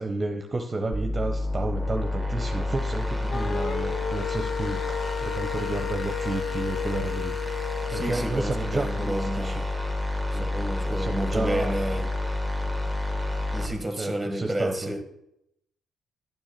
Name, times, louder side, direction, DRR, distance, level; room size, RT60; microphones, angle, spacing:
voice 1, 0.0-7.4 7.9-9.6 10.3-10.5 10.9-11.7 14.0-14.9, right 2 dB, 25° right, 1.0 m, -31 dB
sound 1, 0.9-13.7, left 2 dB, 10° left, 2.2 m, -30 dB
sound 2, 3.3-8.2, left 8 dB, 60° left, 0.6 m, -33 dB
voice 2, 7.9-9.7 10.3-12.1 13.5-15.0, right 1 dB, 5° right, 1.6 m, -31 dB
11.0 x 6.2 x 6.8 m
cardioid pair, 90°, 0 cm